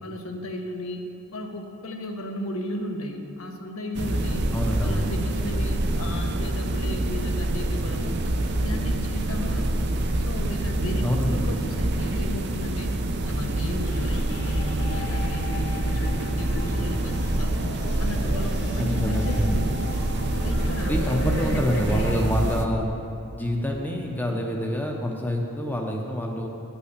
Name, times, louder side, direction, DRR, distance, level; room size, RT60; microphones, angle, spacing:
voice 1, 0.0-1.0 1.3-4.5 4.8-8.2 8.6-9.8 10.2-12.9 13.2-17.6 18.0-19.8 20.4-22.2, left 1 dB, 85° left, 3 dB, 1.1 m, -34 dB
sound 1, 3.9-22.7, right 1 dB, 55° right, 0.6 m, -26 dB
voice 2, 4.5-5.1 11.0-11.5 18.8-19.5 20.9-22.9 23.3-26.5, equal, 10° left, 0 dB, 0.7 m, -27 dB
sound 2, 13.8-22.2, left 1 dB, 55° left, 1.2 m, -38 dB
9.2 x 5.7 x 8.1 m, 2.6 s
head